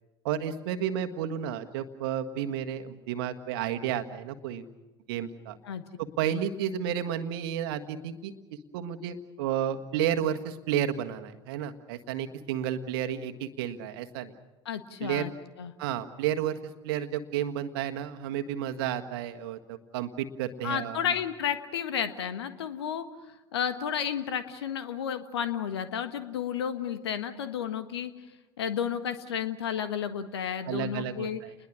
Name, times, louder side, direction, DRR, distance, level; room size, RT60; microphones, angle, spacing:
voice 1, 0.2-4.6 5.1-5.6 6.0-8.3 8.7-14.3 15.0-15.3 15.8-21.1 30.7-31.5, right 10 dB, 55° right, 7 dB, 1.6 m, -32 dB
voice 2, 14.6-15.3 15.6-15.7 20.6-23.1 23.5-28.1 28.6-31.4, left 8 dB, 65° left, 11 dB, 1.5 m, -32 dB
30.0 x 21.5 x 6.3 m, 1.1 s
figure-of-eight pair, 75°, 14 cm